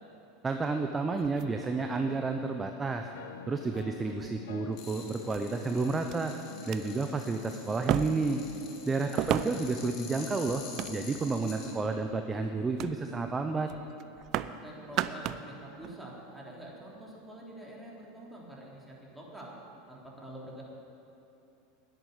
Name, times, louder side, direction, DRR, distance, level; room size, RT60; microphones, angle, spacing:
voice 1, 0.4-3.1 3.5-6.3 6.7-8.4 8.9-13.7, right 3 dB, 20° right, 5 dB, 0.7 m, -31 dB
sound 1, 1.1-2.2 3.0-3.1 3.8-4.4 5.3-5.4 6.1-6.2 6.6-6.8 7.9-8.4 9.2-9.8 10.5-11.3 11.9-12.2 12.8-13.0 13.3-13.4 13.7-14.6 14.8-15.5 15.8-15.9, right 12 dB, 50° right, 0.5 m, -34 dB
sound 2, 1.5-13.7, left 8 dB, 80° left, 0.6 m, -48 dB
sound 3, 4.7-11.7, left 5 dB, 55° left, 2.6 m, -48 dB
voice 2, 9.0-9.6 14.6-19.6 19.9-20.6, right 1 dB, 5° right, -4 dB, 3.3 m, -46 dB
10.5 x 8.2 x 9.4 m, 2.8 s
hypercardioid pair, 105°, 0 cm